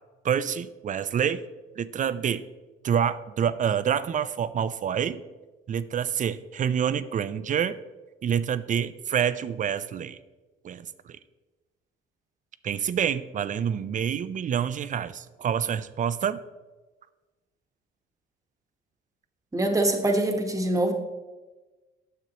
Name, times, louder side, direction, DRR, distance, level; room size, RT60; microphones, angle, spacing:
voice 1, 0.2-1.4 1.8-2.4 2.8-5.2 5.7-7.8 8.2-10.2 10.6-11.2 12.6-16.4, right 8 dB, 40° right, 15 dB, 0.4 m, -27 dB
voice 2, 19.5-20.9, right 1 dB, 15° right, 4 dB, 1.0 m, -24 dB
9.3 x 6.6 x 2.9 m, 1.2 s
cardioid pair, 90°, 21 cm